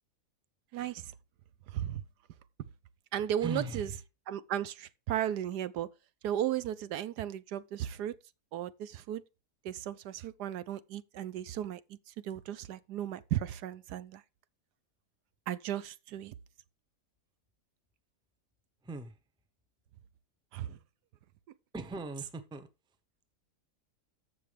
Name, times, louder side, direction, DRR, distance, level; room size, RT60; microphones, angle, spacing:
voice 1, 0.7-1.1 1.7-2.0 3.1-3.9 4.3-5.9 6.2-8.2 8.5-9.2 9.6-12.0 12.2-14.2 15.5-16.3 20.5-20.8, right 11 dB, 80° right, 1.2 m, -35 dB
voice 2, 3.4-3.9 18.8-19.2 21.7-22.7, right 3 dB, 5° right, 0.6 m, -38 dB
14.0 x 5.7 x 3.4 m
omnidirectional pair, 1.8 m